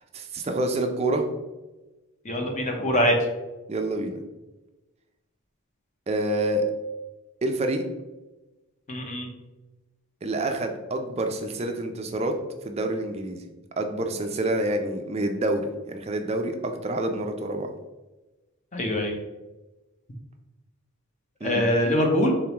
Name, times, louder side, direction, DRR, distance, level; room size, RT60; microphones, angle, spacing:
voice 1, 0.1-1.2 3.7-4.2 6.1-6.7 7.4-7.8 10.2-12.3 12.6-13.4 13.8-17.7 21.4-21.7, right 1 dB, 30° right, 5 dB, 0.4 m, -27 dB
voice 2, 2.2-3.2 8.9-9.3 18.7-19.2 21.4-22.3, equal, 30° left, 2 dB, 0.6 m, -23 dB
3.9 x 3.6 x 2.9 m, 1.1 s
head